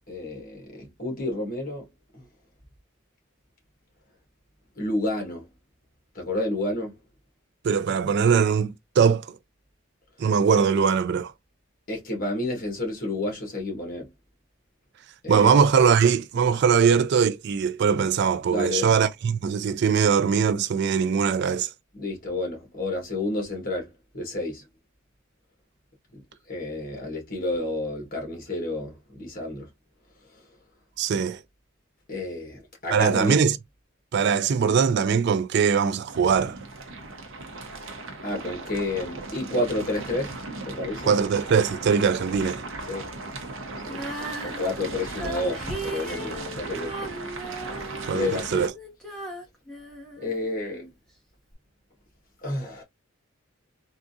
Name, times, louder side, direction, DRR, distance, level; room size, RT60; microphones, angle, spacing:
voice 1, 0.1-1.9 2.1-2.2 4.8-5.5 6.1-7.0 10.2-10.3 11.9-14.1 15.2-15.5 18.5-18.9 21.9-24.6 26.1-29.7 30.3-30.4 32.1-33.4 38.2-40.4 40.6-41.1 42.9-43.0 43.9-47.1 48.1-48.7 50.2-50.8 52.4-52.8, left 2 dB, 45° left, 1.4 m, -30 dB
voice 2, 7.6-9.4 10.2-11.3 15.3-21.7 31.0-31.4 32.9-33.5 34.1-36.6 41.1-42.6 48.0-48.7, right 6 dB, 55° right, 0.3 m, -21 dB
sound 1, 36.1-48.7, right 2 dB, 70° right, 0.7 m, -37 dB
Female singing, 43.8-50.9 51.5-51.6, right 2 dB, 5° left, 1.1 m, -37 dB
3.6 x 2.5 x 2.6 m
head